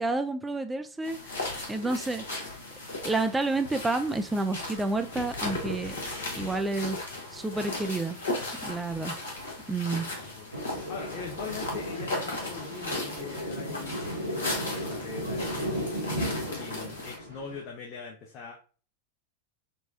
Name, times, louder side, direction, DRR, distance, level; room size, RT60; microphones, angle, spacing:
voice 1, 0.0-2.2 3.0-6.0 6.4-7.0 7.3-8.2 8.6-9.1 9.7-10.1, right 2 dB, 10° right, 7 dB, 0.4 m, -30 dB
Walking through wet forest, 1.0-17.2, left 2 dB, 70° left, 1.0 m, -37 dB
voice 2, 9.9-18.6, left 5 dB, 35° left, -1 dB, 0.7 m, -42 dB
Thunder, 10.5-17.6, equal, 80° right, 0.9 m, -35 dB
4.1 x 2.3 x 2.6 m, 0.37 s
figure-of-eight pair, 90°, 0 cm